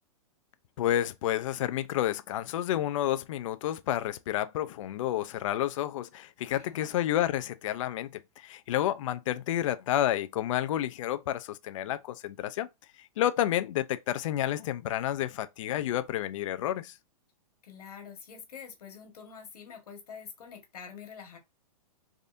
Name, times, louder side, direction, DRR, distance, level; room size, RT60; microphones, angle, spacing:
voice 1, 0.8-12.7 13.0-16.9, left 12 dB, 60° left, 0.4 m, -30 dB
voice 2, 6.5-6.9 17.6-21.4, left 7 dB, 80° left, 1.4 m, -46 dB
3.5 x 2.6 x 2.5 m
hypercardioid pair, 150°, 19 cm